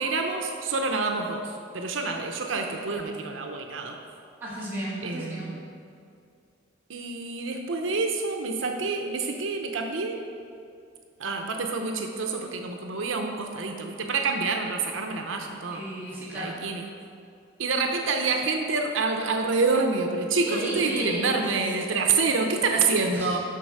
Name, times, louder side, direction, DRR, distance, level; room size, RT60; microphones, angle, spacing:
voice 1, 0.0-4.0 5.0-5.6 6.9-10.2 11.2-15.8 16.3-16.8 17.6-23.4, right 4 dB, 90° right, 3 dB, 0.7 m, -27 dB
voice 2, 4.4-5.5 15.7-16.6 19.2-19.3 20.4-21.4 23.1-23.4, right 1 dB, 10° right, -9 dB, 2.3 m, -33 dB
7.6 x 5.5 x 6.5 m, 2.4 s
head